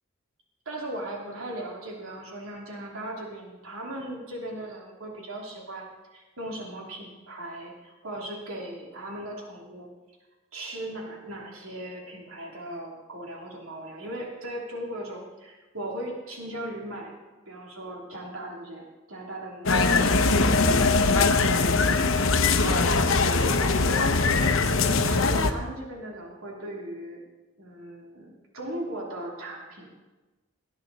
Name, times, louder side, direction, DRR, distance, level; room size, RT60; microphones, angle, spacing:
voice 1, 0.6-5.9 6.1-9.9 10.5-17.1 17.4-20.7 21.0-21.8 22.6-27.2 27.6-29.9, right 1 dB, 85° right, -1 dB, 3.1 m, -38 dB
sound 1, 19.7-25.5, left 3 dB, 70° left, 0.9 m, -21 dB
18.0 x 10.5 x 4.1 m, 1.2 s
head